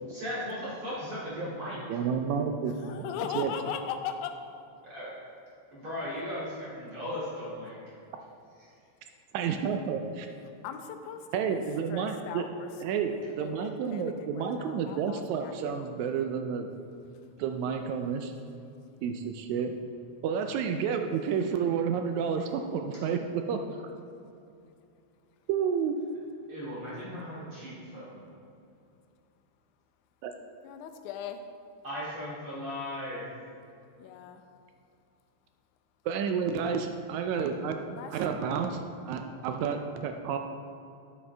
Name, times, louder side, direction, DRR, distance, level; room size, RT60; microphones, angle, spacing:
voice 1, 0.1-1.8 4.8-5.1 5.7-7.8 26.5-28.2 31.8-33.2, equal, 45° right, -9 dB, 3.1 m, -37 dB
voice 2, 1.9-3.1 3.3-3.5 9.3-10.3 11.3-12.5 12.8-16.7 17.4-18.3 19.0-19.7 20.2-23.9 25.5-26.0 30.2-30.3 36.1-38.8 39.1-40.4, right 6 dB, 80° right, 5 dB, 1.8 m, -30 dB
voice 3, 2.8-4.4 10.6-11.6 11.9-15.9 30.6-31.4 34.0-34.4 37.9-38.4, left 8 dB, 85° left, 6 dB, 2.0 m, -39 dB
9.0 x 8.4 x 3.3 m, 2.6 s
omnidirectional pair, 3.5 m